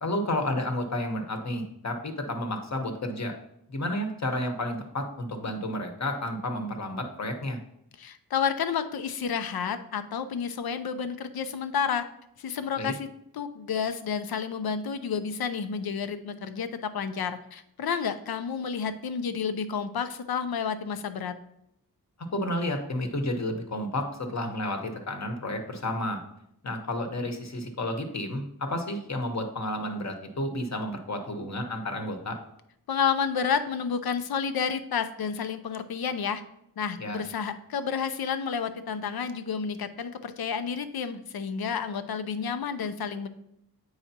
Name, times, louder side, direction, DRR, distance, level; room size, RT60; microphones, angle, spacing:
voice 1, 0.0-3.3 3.7-7.6 12.8-12.9 22.3-26.2 26.6-32.4 37.0-37.2, left 1 dB, 45° left, 4 dB, 1.1 m, -31 dB
voice 2, 8.0-12.0 12.4-21.3 32.9-36.4 36.8-43.3, left 6 dB, 70° left, 10 dB, 0.6 m, -30 dB
8.0 x 4.8 x 2.8 m, 0.76 s
wide cardioid pair, 85°, 37 cm